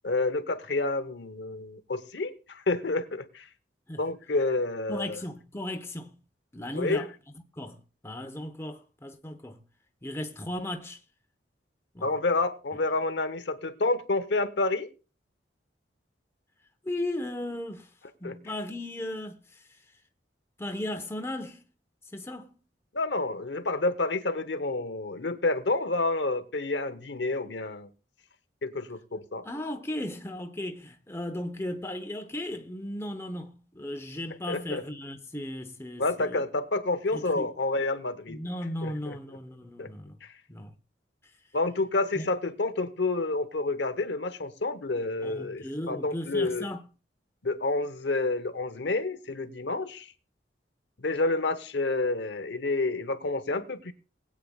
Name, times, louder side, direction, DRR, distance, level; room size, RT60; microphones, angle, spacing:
voice 1, 0.0-3.5 4.0-5.2 6.7-7.0 12.0-14.9 18.2-18.4 22.9-27.9 28.6-29.4 34.5-34.8 36.0-38.4 38.8-39.2 39.8-39.9 40.2-40.3 41.5-46.7 47.4-50.1 51.0-53.9, left 2 dB, 75° left, 0.9 m, -29 dB
voice 2, 4.9-6.1 6.5-7.1 7.5-9.6 10.0-11.0 11.9-12.1 16.8-17.9 18.2-19.6 20.6-21.7 22.1-22.6 29.4-36.4 37.1-37.5 38.3-40.2 40.5-40.7 42.2-42.3 45.2-46.8, left 1 dB, 15° left, 0.9 m, -36 dB
20.5 x 8.6 x 2.3 m
head